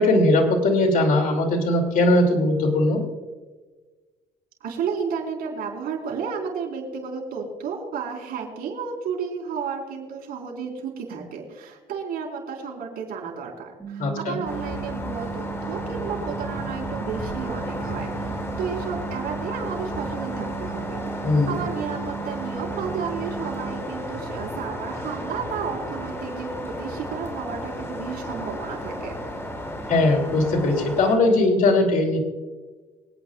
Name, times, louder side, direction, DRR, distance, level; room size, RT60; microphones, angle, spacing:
voice 1, 0.0-3.1 14.0-14.4 21.2-21.6 29.9-32.2, left 2 dB, 55° left, 2 dB, 2.7 m, -20 dB
voice 2, 4.6-29.2, right 6 dB, 65° right, -2 dB, 4.3 m, -32 dB
sound 1, 13.8-23.8, right 7 dB, 15° right, 2.2 m, -36 dB
sound 2, 14.4-31.2, equal, 15° left, 2.6 m, -33 dB
25.5 x 8.9 x 2.4 m, 1.3 s
cardioid pair, 110°, 17 cm